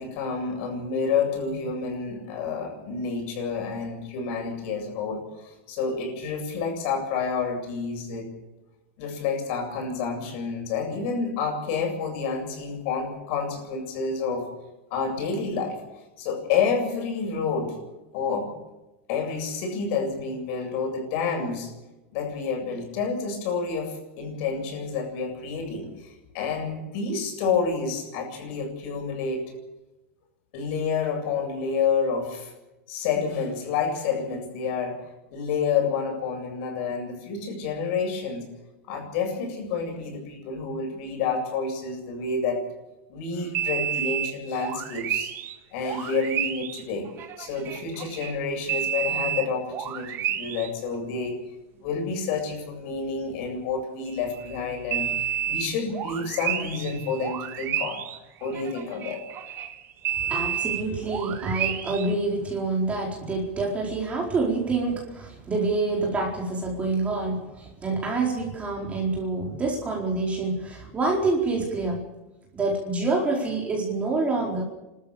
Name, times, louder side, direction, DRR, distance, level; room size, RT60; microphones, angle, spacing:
voice 1, 0.0-8.3 9.0-14.5 14.9-15.8 16.2-17.8 18.1-18.5 19.1-21.7 22.1-29.4 30.5-32.5 32.9-35.0 35.3-38.4 38.9-42.6 43.1-45.3 45.7-47.1 47.4-51.4 51.8-55.1 55.5-58.0 58.4-59.2, left 5 dB, 60° left, 3 dB, 7.8 m, -29 dB
sound 1, 43.5-45.5 45.8-48.3 48.7-50.7 50.9-51.0 54.1-62.1, right 10 dB, 35° right, 1.9 m, -30 dB
voice 2, 60.3-72.0 72.5-74.6, right 3 dB, 20° right, -2 dB, 4.4 m, -27 dB
30.0 x 13.5 x 7.2 m, 1.0 s
supercardioid pair, 140°, 7 cm